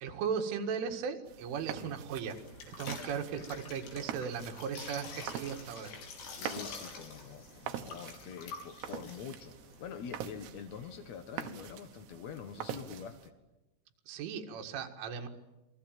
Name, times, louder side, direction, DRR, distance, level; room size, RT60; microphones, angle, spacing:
voice 1, 0.0-2.4 2.7-5.9 14.1-15.3, right 6 dB, 85° right, 5 dB, 4.3 m, -37 dB
sound 1, 1.3-13.3, right 9 dB, 70° right, 3.3 m, -45 dB
sound 2, 2.2-10.2, left 5 dB, 65° left, 5.8 m, -48 dB
voice 2, 6.4-13.3, left 7 dB, 80° left, 8 dB, 1.6 m, -45 dB
29.0 x 22.5 x 9.1 m, 0.99 s
omnidirectional pair, 5.5 m